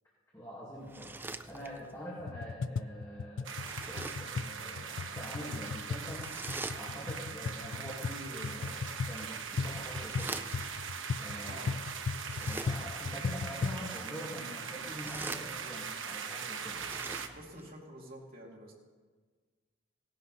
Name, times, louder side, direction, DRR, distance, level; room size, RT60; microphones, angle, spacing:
voice 1, 0.3-1.2 1.5-6.3 6.7-10.4 11.2-11.7 12.4-16.8, equal, 15° left, -7 dB, 2.4 m, -45 dB
sips coffee various nice, 0.8-2.0 3.5-4.4 6.1-7.2 9.0-10.9 12.2-13.1 14.7-15.9 16.6-17.7, right 2 dB, 10° right, 0.4 m, -44 dB
sound 1, 2.2-13.9, left 5 dB, 70° left, 0.4 m, -38 dB
sound 2, 3.4-17.3, right 6 dB, 75° right, 1.0 m, -41 dB
voice 2, 11.4-11.7 17.3-18.7, right 1 dB, 50° right, -2 dB, 2.7 m, -49 dB
17.0 x 11.5 x 4.2 m, 1.5 s
head